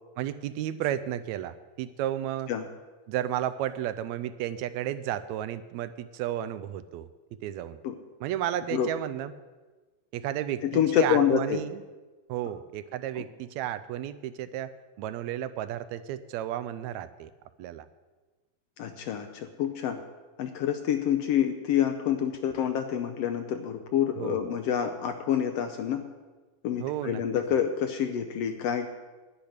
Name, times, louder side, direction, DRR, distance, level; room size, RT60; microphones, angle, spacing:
voice 1, 0.2-2.5 3.1-7.1 7.4-7.8 8.2-9.3 10.1-11.8 12.3-14.7 15.0-17.3 17.6-17.9 24.2-24.5 26.8-27.2 27.5-27.6, right 11 dB, 80° right, 13 dB, 1.8 m, -33 dB
voice 2, 10.6-11.6 18.8-20.0 20.4-26.0 26.6-28.9, left 9 dB, 75° left, 7 dB, 1.5 m, -27 dB
10.5 x 10.0 x 6.4 m, 1.3 s
omnidirectional pair, 3.3 m